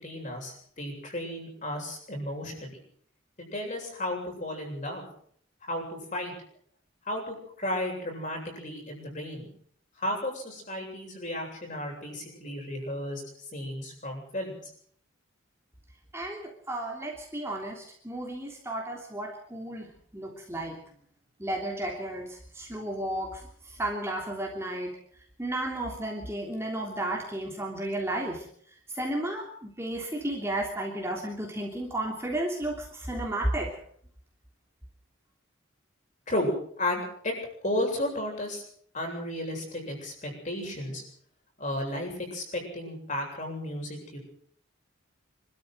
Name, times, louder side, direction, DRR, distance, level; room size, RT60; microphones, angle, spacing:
voice 1, 0.0-2.7 3.5-5.0 5.6-6.3 7.1-9.5 10.0-13.2 13.5-14.7 36.3-37.3 37.6-38.6 38.9-41.0 41.6-44.2, left 1 dB, 35° left, 1 dB, 8.0 m, -33 dB
voice 2, 16.1-20.8 21.4-25.0 25.4-28.5 28.9-33.7, right 1 dB, 10° right, -1 dB, 3.2 m, -33 dB
26.0 x 13.0 x 7.8 m, 0.63 s
head